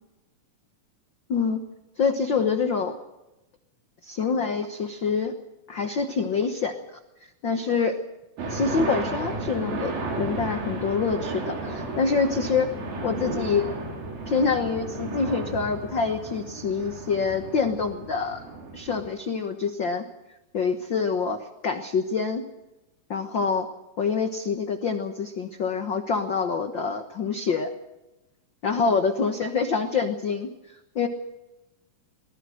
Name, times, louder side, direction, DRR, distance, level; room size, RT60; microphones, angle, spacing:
voice 1, 2.0-2.9 4.0-5.3 5.7-7.0 7.4-7.9 8.5-12.7 13.0-13.6 14.3-18.4 18.7-20.0 20.5-22.4 23.1-23.7 24.0-27.7 28.6-31.1, left 5 dB, 90° left, 7 dB, 1.0 m, -26 dB
sound 1, 8.4-19.1, right 2 dB, 80° right, 5.7 m, -33 dB
23.5 x 20.0 x 6.4 m, 0.98 s
omnidirectional pair, 4.1 m